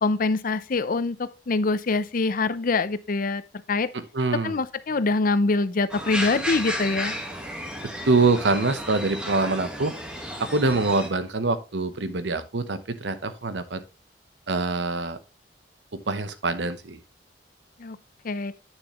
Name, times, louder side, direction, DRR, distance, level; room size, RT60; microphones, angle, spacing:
voice 1, 0.0-3.4 3.7-3.9 4.4-7.1 17.8-18.0 18.2-18.5, left 3 dB, 50° left, 0.6 m, -24 dB
voice 2, 3.9-4.6 8.1-9.9 10.4-13.8 14.5-15.2 15.9-17.0, right 3 dB, 80° right, 0.9 m, -25 dB
sound 1, 5.9-11.1, equal, 5° right, 1.4 m, -33 dB
9.0 x 6.7 x 3.0 m
head